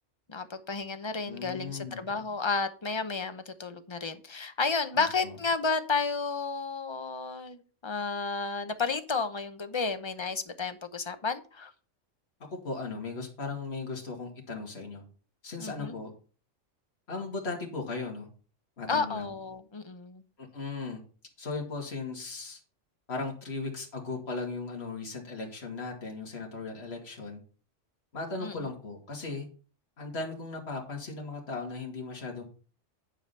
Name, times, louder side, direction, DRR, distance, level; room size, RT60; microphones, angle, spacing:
voice 1, 0.3-11.7 15.6-16.0 18.9-20.2 28.4-28.7, left 4 dB, 25° left, 9 dB, 0.7 m, -32 dB
voice 2, 1.3-2.0 4.9-5.4 12.5-15.0 15.4-16.1 17.1-18.3 18.8-19.3 20.4-21.0 21.4-22.6 23.1-27.4 28.1-29.5 30.0-32.4, left 3 dB, 55° left, 0 dB, 2.4 m, -37 dB
10.0 x 4.9 x 5.5 m, 0.38 s
omnidirectional pair, 1.3 m